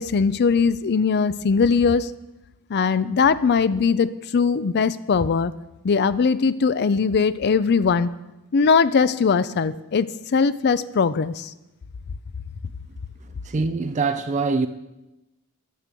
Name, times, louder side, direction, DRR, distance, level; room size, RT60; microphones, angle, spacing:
voice 1, 0.0-2.1 2.7-5.5 5.8-8.1 8.5-10.1 10.3-11.5, left 5 dB, 45° left, 0.4 m, -20 dB
voice 2, 13.2-14.7, right 4 dB, 30° right, 0.4 m, -24 dB
10.5 x 6.8 x 7.4 m
head